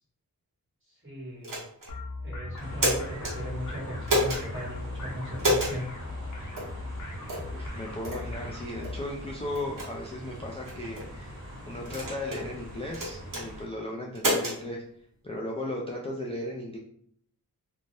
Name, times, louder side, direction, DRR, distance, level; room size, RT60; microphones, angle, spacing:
voice 1, 0.9-1.6 2.2-5.9, equal, 35° right, -5 dB, 1.2 m, -38 dB
sound 1, 1.4-1.9 2.6-3.3 4.1-4.4 5.4-5.7 6.6-6.7 7.3-7.5 8.0-8.2 8.8-8.9 9.5-9.9 10.6-11.0 11.8-12.4 12.9-13.4 14.1-14.6, equal, 60° right, 1.0 m, -28 dB
sound 2, 1.9-9.0, left 2 dB, 55° left, 0.7 m, -39 dB
sound 3, 2.6-13.6, equal, 75° right, 1.2 m, -43 dB
voice 2, 7.5-14.8 15.2-16.8, left 1 dB, 15° left, -2 dB, 0.3 m, -36 dB
2.6 x 2.1 x 3.2 m, 0.65 s
wide cardioid pair, 125°, 37 cm